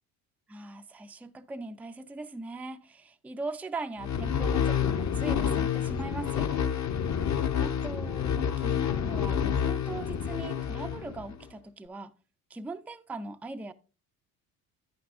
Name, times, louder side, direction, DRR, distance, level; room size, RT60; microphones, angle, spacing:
voice 1, 0.5-6.5 7.6-12.1 12.5-13.7, right 3 dB, 5° right, 0.4 m, -40 dB
sound 1, 4.0-11.4, left 8 dB, 40° left, 0.8 m, -29 dB
10.0 x 9.4 x 2.5 m
hypercardioid pair, 60°, 46 cm